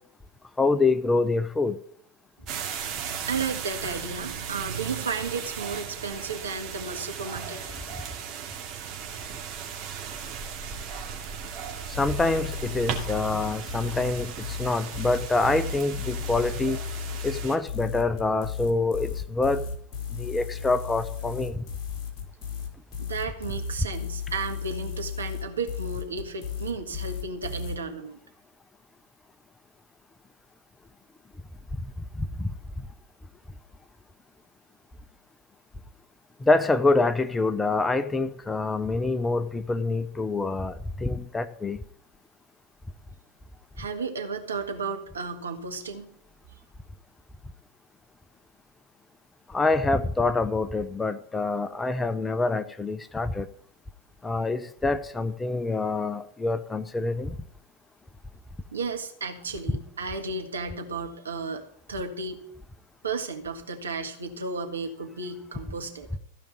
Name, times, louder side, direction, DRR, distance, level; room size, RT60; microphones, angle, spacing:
voice 1, 0.6-1.8 12.0-16.8 17.2-19.6 20.1-21.6 31.8-31.9 32.2-32.5 36.4-41.8 49.5-53.5 54.2-57.3, left 3 dB, 10° left, 13 dB, 0.6 m, -26 dB
voice 2, 2.4-7.6 23.0-28.2 43.8-46.1 58.7-62.4 63.0-66.1, right 4 dB, 70° right, 4 dB, 1.7 m, -33 dB
sound 1, 2.5-17.6, right 7 dB, 35° right, 2.5 m, -37 dB
sound 2, 11.9-27.8, left 6 dB, 35° left, 3.0 m, -34 dB
15.0 x 5.2 x 9.3 m, 0.68 s
figure-of-eight pair, 90°, 0 cm